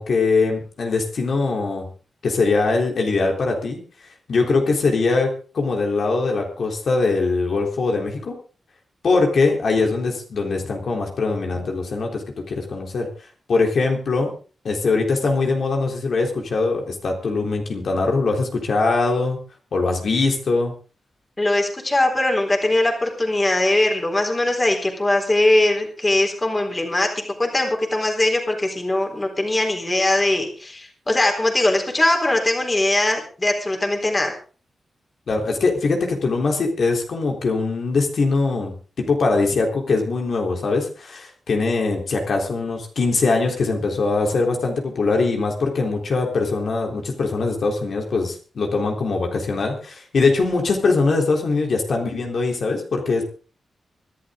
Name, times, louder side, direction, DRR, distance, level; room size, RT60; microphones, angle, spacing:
voice 1, 0.0-1.9 2.2-3.8 4.3-5.3 5.5-8.3 9.0-13.1 13.5-14.3 14.6-19.4 19.7-20.7 35.3-53.2, left 3 dB, 60° left, 1 dB, 3.7 m, -22 dB
voice 2, 21.4-27.1 27.4-34.3, left 1 dB, 20° left, 2 dB, 4.0 m, -20 dB
24.5 x 11.5 x 3.8 m, 0.38 s
wide cardioid pair, 125°, 0 cm